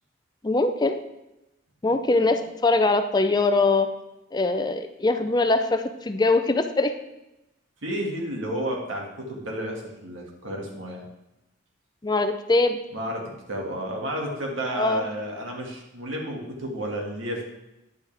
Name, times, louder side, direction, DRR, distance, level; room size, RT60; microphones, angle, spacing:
voice 1, 0.4-1.0 1.8-3.9 4.3-6.9 12.0-12.8 14.8-15.1, left 2 dB, 20° left, 8 dB, 0.5 m, -22 dB
voice 2, 1.8-2.2 7.8-11.0 12.9-17.4, equal, 85° right, 0 dB, 2.1 m, -32 dB
10.0 x 9.0 x 3.5 m, 0.93 s
head